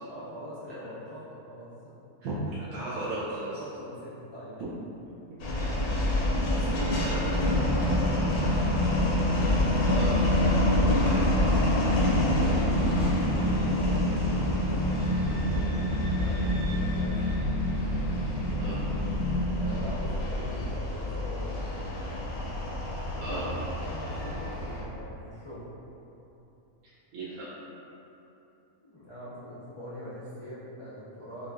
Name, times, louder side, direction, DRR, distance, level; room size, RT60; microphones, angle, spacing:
voice 1, 0.0-2.0 3.6-4.7 6.5-8.5 10.6-12.8 13.6-14.8 15.4-17.5 19.6-21.6 23.1-25.7 28.8-31.5, equal, 40° left, -11 dB, 0.4 m, -42 dB
voice 2, 2.2-3.6 5.5-5.8 7.0-7.4 9.9-10.3 18.6-18.8 23.2-23.5 27.1-27.5, right 2 dB, 80° right, -11 dB, 1.2 m, -35 dB
sound 1, 5.4-24.8, left 1 dB, 90° left, 1.2 m, -28 dB
sound 2, 7.4-19.6, left 1 dB, 70° left, 0.8 m, -29 dB
5.5 x 2.5 x 2.6 m, 3.0 s
omnidirectional pair, 1.5 m